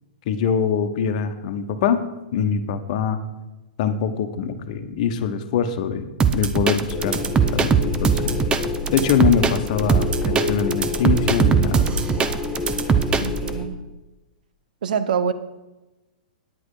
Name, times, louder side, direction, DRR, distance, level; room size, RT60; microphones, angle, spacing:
voice 1, 0.3-2.0 2.3-3.2 3.8-7.2 7.5-8.4 8.9-12.0, left 7 dB, 50° left, 7 dB, 1.1 m, -23 dB
sound 1, 6.2-13.5, right 6 dB, 20° right, 0.6 m, -20 dB
sound 2, 6.9-13.6, left 3 dB, 15° left, 1.6 m, -28 dB
voice 2, 13.2-13.8 14.8-15.3, right 7 dB, 70° right, 13 dB, 0.8 m, -25 dB
9.7 x 8.3 x 4.9 m, 1.1 s
hypercardioid pair, 125°, 5 cm